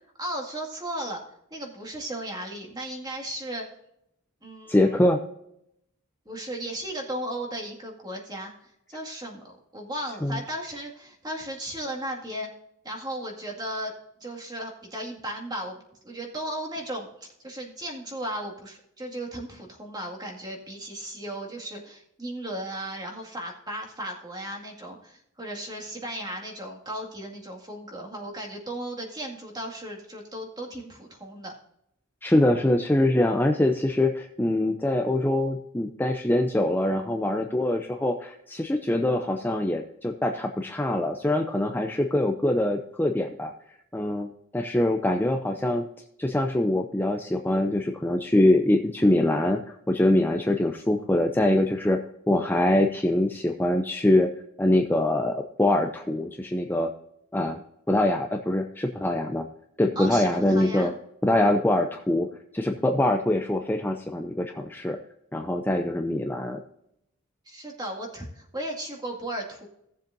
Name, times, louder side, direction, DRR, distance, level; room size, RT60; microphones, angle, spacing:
voice 1, 0.2-1.2 1.5-3.7 4.4-5.0 6.3-12.5 12.8-13.9 14.2-31.5 60.0-61.0 67.5-69.7, right 1 dB, 20° right, 0 dB, 2.1 m, -36 dB
voice 2, 4.7-5.2 10.2-10.4 32.2-43.5 43.9-45.8 46.2-52.0 52.3-54.3 54.6-56.9 57.3-57.6 57.9-59.5 59.8-60.9 61.2-62.3 62.5-65.0 65.3-66.6, left 1 dB, 10° left, 4 dB, 0.5 m, -24 dB
17.0 x 7.3 x 2.7 m, 0.78 s
head